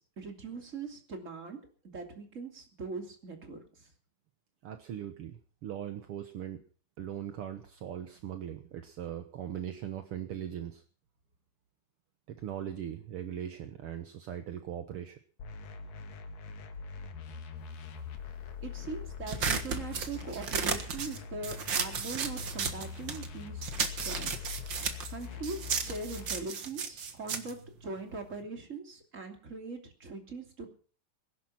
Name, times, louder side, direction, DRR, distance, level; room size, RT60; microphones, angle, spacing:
voice 1, 0.0-1.6 1.9-3.6 18.6-23.6 24.0-24.5 25.1-30.7, right 3 dB, 25° right, 4 dB, 2.8 m, -41 dB
voice 2, 4.6-6.6 7.0-10.8 12.3-15.2, right 10 dB, 65° right, 7 dB, 1.5 m, -40 dB
sound 1, 15.4-26.4, left 6 dB, 80° left, 3.3 m, -43 dB
sound 2, 19.3-23.3 23.6-28.4, right 6 dB, 45° right, 1.7 m, -34 dB
20.5 x 11.0 x 5.8 m, 0.42 s
omnidirectional pair, 3.9 m